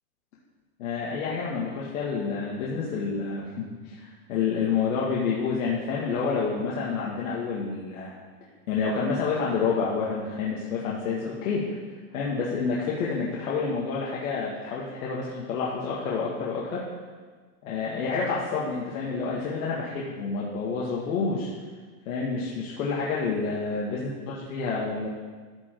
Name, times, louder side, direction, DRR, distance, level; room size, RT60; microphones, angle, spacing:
voice 1, 0.8-8.1 8.7-11.8 12.1-16.8 17.6-21.5 22.0-25.1, left 5 dB, 65° left, -5 dB, 1.8 m, -29 dB
14.0 x 5.0 x 4.5 m, 1.4 s
supercardioid pair, 175°, 44 cm